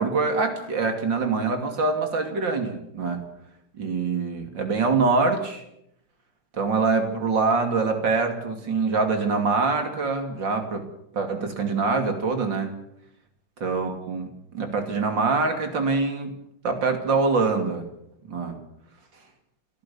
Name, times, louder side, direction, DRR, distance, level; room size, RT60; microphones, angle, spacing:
voice 1, 0.0-3.2 3.8-5.6 6.6-10.9 11.1-12.7 13.6-14.3 14.5-16.3 16.6-17.8 18.3-18.6, right 4 dB, 60° right, 5 dB, 3.3 m, -24 dB
29.5 x 13.5 x 7.1 m, 0.78 s
omnidirectional pair, 2.3 m